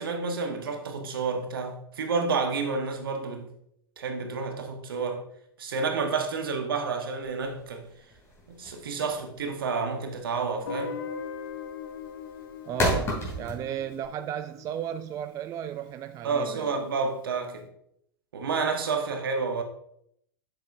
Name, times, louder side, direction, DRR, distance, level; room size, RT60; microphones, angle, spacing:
voice 1, 0.0-3.4 4.0-5.2 5.6-7.9 8.5-10.9 16.2-17.7 18.3-19.6, right 4 dB, 75° right, 1.3 m, -30 dB
sound 1, 7.2-14.1, equal, 20° left, 3.0 m, -32 dB
Guitar, 10.7-15.5, left 6 dB, 70° left, 0.6 m, -40 dB
voice 2, 12.7-16.7, right 10 dB, 30° right, 0.4 m, -35 dB
7.7 x 6.8 x 2.6 m
figure-of-eight pair, 95°, 12 cm